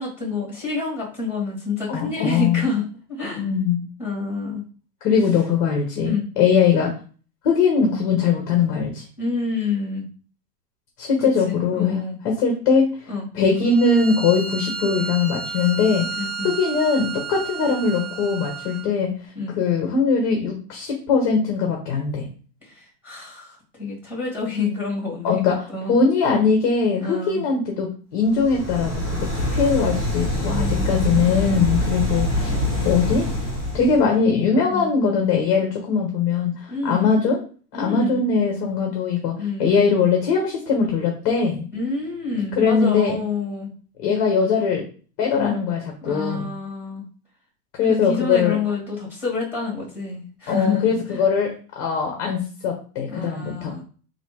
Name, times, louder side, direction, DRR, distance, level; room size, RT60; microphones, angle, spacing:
voice 1, 0.0-3.4 4.0-4.6 6.0-6.3 9.2-10.1 11.2-12.2 13.1-13.3 16.2-16.5 19.3-19.6 22.6-26.0 27.0-27.4 30.4-31.3 32.5-32.9 34.7-34.9 36.7-37.1 37.7-38.2 39.4-39.7 41.7-43.7 45.3-45.6 46.0-47.1 47.9-51.2 53.1-53.8, left 4 dB, 5° right, -3 dB, 1.6 m, -28 dB
voice 2, 1.9-2.7 3.4-3.8 5.0-6.9 7.4-9.0 11.0-12.9 13.3-16.1 16.4-19.1 19.6-22.3 25.2-28.9 29.5-32.5 32.8-33.3 33.7-37.4 37.7-39.3 39.6-41.6 42.3-43.2 44.0-44.8 45.2-46.5 47.8-48.6 50.5-53.7, left 5 dB, 25° left, 1 dB, 0.5 m, -21 dB
Bowed string instrument, 13.6-18.9, right 5 dB, 65° right, 1.0 m, -32 dB
sound 1, 28.3-34.0, left 1 dB, 45° right, 1.6 m, -24 dB
3.3 x 2.5 x 4.4 m, 0.40 s
supercardioid pair, 165°, 48 cm